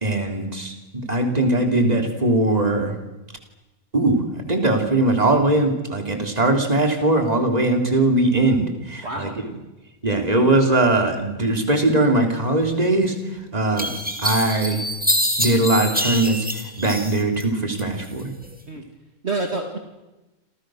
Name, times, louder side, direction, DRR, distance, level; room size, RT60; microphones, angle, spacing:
voice 1, 0.0-2.9 3.9-4.2 4.5-9.3 10.0-13.2 13.5-13.9 14.2-14.8 15.4-16.5 16.8-18.3, right 2 dB, 30° right, 4 dB, 3.5 m, -20 dB
voice 2, 9.0-9.6 18.7-18.8 19.2-19.8, right 2 dB, 50° right, 3 dB, 2.7 m, -28 dB
sound 1, 13.0-13.1 13.8-17.4 17.8-18.5, equal, 5° right, 2.6 m, -25 dB
29.5 x 26.5 x 6.4 m, 1.1 s
omnidirectional pair, 1.4 m